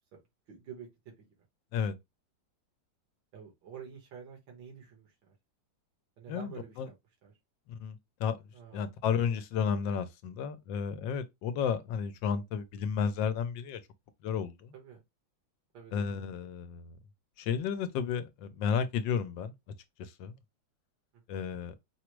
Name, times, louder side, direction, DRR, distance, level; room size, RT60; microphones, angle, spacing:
voice 1, 0.5-1.3 3.3-5.4 6.2-6.9 7.2-7.3 8.5-8.9 14.7-15.0 15.7-16.2 21.3-21.5, right 7 dB, 80° right, 1.9 m, -48 dB
voice 2, 6.3-6.9 7.7-8.4 8.7-13.8 14.2-14.7 15.9-17.0 17.4-19.5 20.0-20.3 21.3-21.7, left 7 dB, 90° left, 1.4 m, -32 dB
4.9 x 2.0 x 4.5 m
omnidirectional pair, 2.0 m